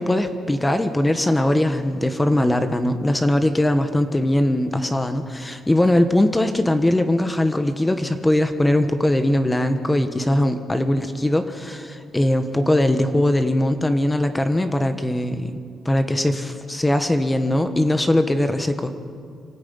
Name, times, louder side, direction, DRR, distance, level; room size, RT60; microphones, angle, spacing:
voice 1, 0.0-15.5 15.8-18.9, left 1 dB, 15° left, 8 dB, 1.3 m, -20 dB
25.0 x 13.0 x 9.5 m, 2.5 s
cardioid pair, 90°, 0 cm